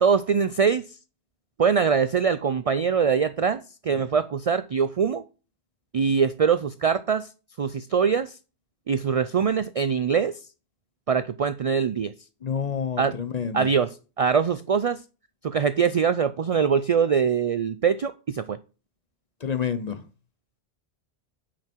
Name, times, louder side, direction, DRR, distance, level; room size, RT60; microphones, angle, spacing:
voice 1, 0.0-0.8 1.6-5.2 5.9-7.3 7.6-8.3 8.9-10.4 11.1-12.1 13.0-13.1 13.5-15.0 15.4-18.6, right 6 dB, 60° right, 0.3 m, -23 dB
voice 2, 12.4-13.7 19.4-20.0, left 7 dB, 40° left, 0.9 m, -28 dB
8.6 x 5.7 x 4.4 m
omnidirectional pair, 1.2 m